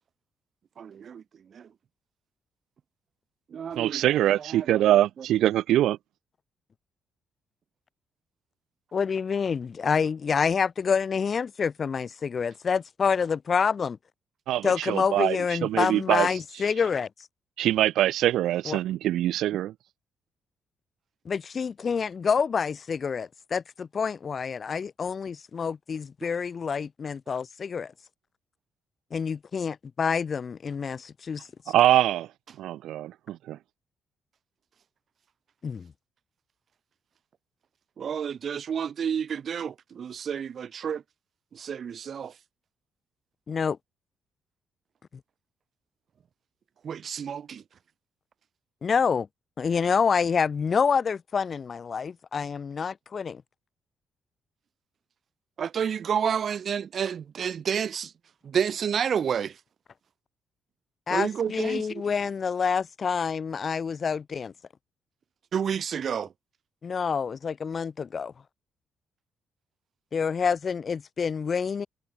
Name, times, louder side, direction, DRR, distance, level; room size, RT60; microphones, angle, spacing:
voice 1, 0.8-1.2 1.5-1.7 3.5-4.8 38.0-41.0 41.5-42.3 46.8-47.6 55.6-58.1 58.4-59.6 61.1-62.0 65.5-66.3, right 7 dB, 55° right, 0.9 m, -30 dB
voice 2, 3.8-6.0 14.5-16.3 17.6-19.7 31.7-32.3 32.6-33.6, right 13 dB, 80° right, 1.4 m, -23 dB
voice 3, 8.9-14.0 14.6-17.1 18.6-18.8 21.2-27.9 29.1-31.7 35.6-35.9 43.5-43.8 48.8-49.3 49.6-53.4 61.1-64.5 66.8-68.3 70.1-71.9, left 6 dB, 45° left, 1.8 m, -27 dB
cardioid pair, 90°, 0 cm